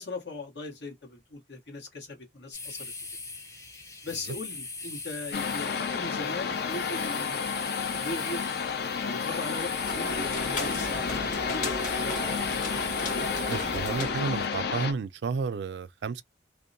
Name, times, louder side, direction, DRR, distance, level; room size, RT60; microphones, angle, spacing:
voice 1, 0.0-2.9 4.0-8.4 9.0-12.4, left 2 dB, 75° left, 1.3 m, -39 dB
sound 1, 2.5-14.0, left 3 dB, 15° left, 0.6 m, -41 dB
sound 2, 5.3-14.9, left 6 dB, 60° left, 0.5 m, -31 dB
sound 3, 9.4-14.9, left 1 dB, 45° left, 1.2 m, -36 dB
voice 2, 13.5-16.2, right 5 dB, 75° right, 0.4 m, -31 dB
2.6 x 2.1 x 2.5 m
head